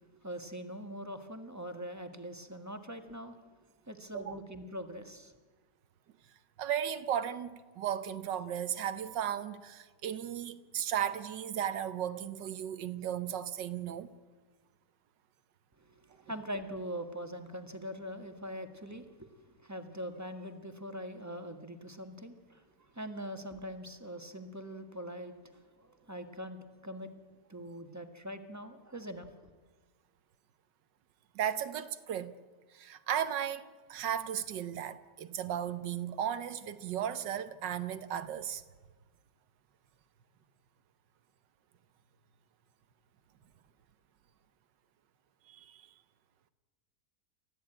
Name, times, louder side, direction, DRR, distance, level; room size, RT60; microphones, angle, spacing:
voice 1, 0.2-3.4 3.9-5.3 16.1-22.6 22.9-27.1 27.5-29.3, equal, 10° right, 1.4 m, -42 dB
voice 2, 6.6-14.1 31.3-32.3 32.7-38.6 45.5-45.9, right 9 dB, 85° right, 1.7 m, -35 dB
29.5 x 14.0 x 8.9 m
omnidirectional pair, 1.9 m